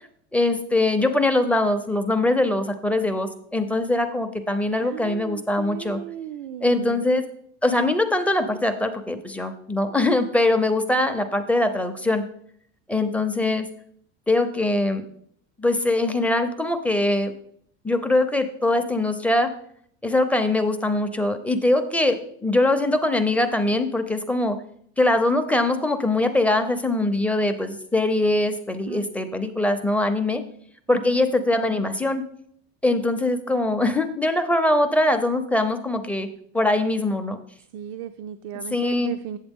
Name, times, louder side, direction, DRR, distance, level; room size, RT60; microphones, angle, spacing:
voice 1, 0.3-6.0 6.6-7.2 7.6-12.2 12.9-13.7 14.3-15.0 15.6-17.3 17.8-19.5 20.0-24.6 25.0-30.4 30.9-32.2 32.8-36.3 36.5-37.4 38.7-39.1, left 2 dB, 5° left, 7 dB, 0.4 m, -22 dB
voice 2, 4.8-7.1 28.9-29.1 30.9-31.3 37.7-39.4, right 10 dB, 90° right, 9 dB, 0.5 m, -36 dB
8.0 x 7.8 x 3.5 m, 0.65 s
supercardioid pair, 140°, 33 cm